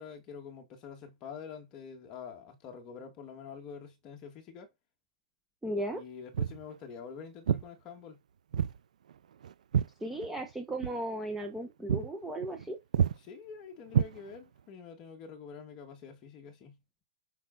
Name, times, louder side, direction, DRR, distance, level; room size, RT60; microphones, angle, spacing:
voice 1, 0.0-4.7 5.9-8.2 13.2-16.8, left 6 dB, 20° left, 2.2 m, -46 dB
voice 2, 5.6-6.0 10.0-12.8, right 1 dB, 5° right, 1.1 m, -36 dB
Walk footsteps, 6.3-6.6 7.5-7.7 8.5-8.8 9.1-10.5 10.8-11.0 11.4-11.6 11.9-12.1 12.4-12.7 12.9-13.2 13.9-14.6, right 8 dB, 75° right, 0.7 m, -29 dB
8.2 x 5.9 x 4.1 m
hypercardioid pair, 170°, 4 cm